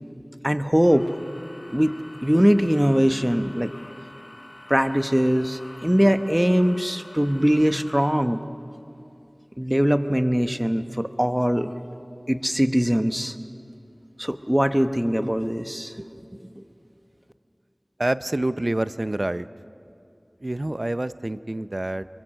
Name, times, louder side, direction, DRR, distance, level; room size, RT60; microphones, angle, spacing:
voice 1, 0.4-1.1 1.7-1.9 2.2-3.7 4.7-8.4 9.6-11.7 12.3-13.3 14.2-16.1 16.6-16.7, equal, 10° right, 9 dB, 0.9 m, -21 dB
sound 1, 0.8-8.0, left 1 dB, 65° left, 3.3 m, -46 dB
voice 2, 18.0-19.5 20.4-22.1, right 1 dB, 50° right, 14 dB, 0.5 m, -27 dB
25.5 x 22.5 x 6.4 m, 2.7 s
wide cardioid pair, 40°, 0 cm